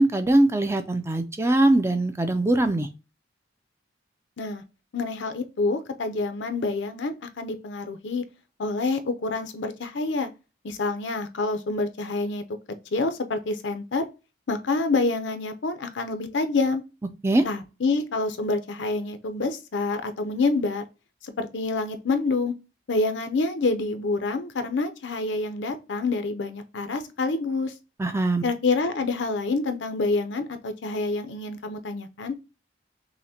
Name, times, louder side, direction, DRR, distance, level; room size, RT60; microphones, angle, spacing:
voice 1, 0.0-2.9 17.2-17.4 28.0-28.4, right 1 dB, 15° right, 0.4 m, -21 dB
voice 2, 4.9-8.2 8.6-10.3 10.6-12.4 12.9-14.0 14.5-16.8 17.4-20.8 21.2-22.5 22.9-27.7 28.4-32.3, left 3 dB, 75° left, 0.6 m, -27 dB
5.6 x 2.1 x 2.7 m
head